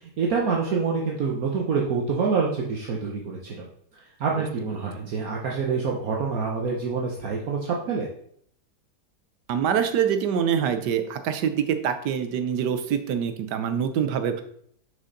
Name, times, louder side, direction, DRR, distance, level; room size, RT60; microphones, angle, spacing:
voice 1, 0.0-3.7 4.2-8.1, right 5 dB, 60° right, -1 dB, 1.3 m, -26 dB
voice 2, 9.5-14.4, right 8 dB, 85° right, 9 dB, 1.4 m, -25 dB
6.3 x 5.5 x 3.9 m, 0.66 s
omnidirectional pair, 1.8 m